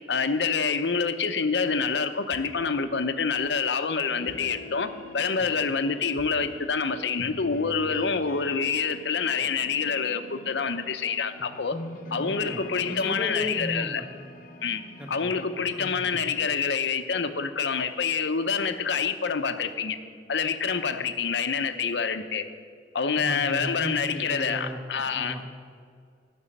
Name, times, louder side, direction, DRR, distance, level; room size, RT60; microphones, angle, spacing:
voice 1, 0.1-11.8 12.1-14.0 14.6-14.8 15.1-20.0 20.3-22.5 22.9-25.4, left 5 dB, 80° left, 9 dB, 0.7 m, -27 dB
sound 1, 2.3-2.7 4.3-4.7 6.2-6.5, left 1 dB, 25° left, 1.2 m, -49 dB
sound 2, 4.2-16.4, left 1 dB, 50° left, 1.0 m, -44 dB
voice 2, 12.1-14.0 15.0-15.3 15.7-16.3 23.2-25.4, equal, 5° right, 2 dB, 1.2 m, -36 dB
12.5 x 6.2 x 8.8 m, 2.1 s
head